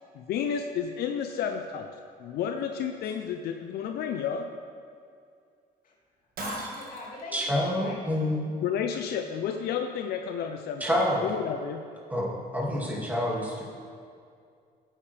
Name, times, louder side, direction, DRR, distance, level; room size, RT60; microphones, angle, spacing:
voice 1, 0.1-1.9 2.2-4.5 8.6-11.8, left 7 dB, 70° left, 5 dB, 0.6 m, -31 dB
voice 2, 6.4-8.0 13.2-13.6, left 2 dB, 55° left, -3 dB, 2.3 m, -41 dB
Shatter, 6.4-7.2, right 3 dB, 60° right, 1.7 m, -38 dB
voice 3, 7.3-8.5 10.8-11.2 12.1-13.6, left 1 dB, 10° right, -4 dB, 2.2 m, -27 dB
12.5 x 8.9 x 3.4 m, 2.3 s
cardioid pair, 110°, 17 cm